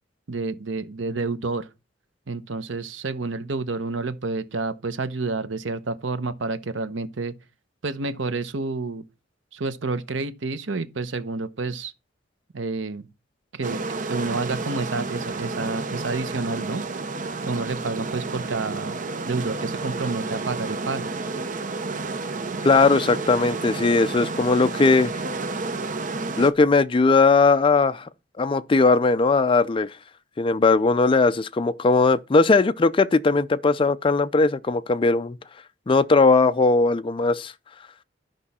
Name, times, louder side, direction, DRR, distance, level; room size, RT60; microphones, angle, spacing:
voice 1, 0.3-1.7 2.3-7.3 7.8-9.0 9.5-11.9 12.5-13.1 13.5-13.8 14.1-16.8 17.4-19.0 19.3-21.1, right 3 dB, 80° right, 0.9 m, -29 dB
sound 1, 13.6-26.5, right 3 dB, 45° right, 0.8 m, -31 dB
voice 2, 22.6-25.1 26.4-28.1 28.4-29.9 30.4-35.4 35.9-37.5, left 3 dB, 30° left, 0.4 m, -19 dB
12.0 x 5.4 x 4.2 m
head